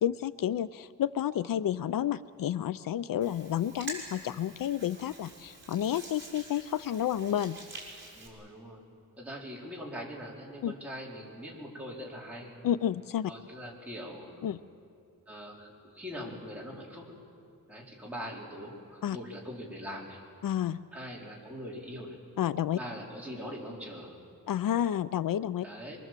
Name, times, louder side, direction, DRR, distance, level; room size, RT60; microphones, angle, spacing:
voice 1, 0.0-7.6 10.6-10.7 12.6-13.3 14.4-14.6 19.0-19.2 20.4-20.8 22.4-22.8 24.5-25.7, left 10 dB, 75° left, 16 dB, 0.5 m, -30 dB
Hands, 3.2-8.3, right 2 dB, 35° right, 5.6 m, -46 dB
voice 2, 8.1-8.8 9.2-12.6 13.3-14.5 15.3-17.1 17.7-20.2 20.9-22.2 22.7-24.2 25.6-26.0, equal, 5° right, -4 dB, 4.1 m, -42 dB
24.0 x 23.0 x 7.5 m, 2.5 s
wide cardioid pair, 155°, 34 cm